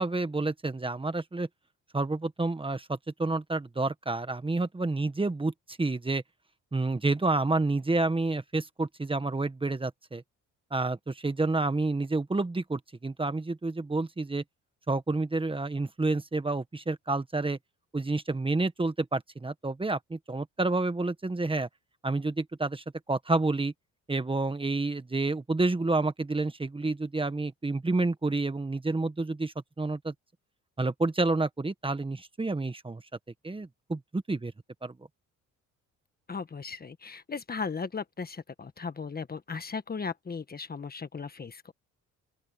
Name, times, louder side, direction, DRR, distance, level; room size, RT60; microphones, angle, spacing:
voice 1, 0.0-1.5 1.9-6.2 6.7-10.2 10.7-14.4 14.9-17.6 17.9-21.7 22.0-23.7 24.1-30.1 30.8-33.0 33.4-34.5 34.8-34.9, right 2 dB, 15° right, 1.5 m, -29 dB
voice 2, 36.3-41.6, left 5 dB, 30° left, 1.4 m, -37 dB
open air
cardioid pair, 90°, 30 cm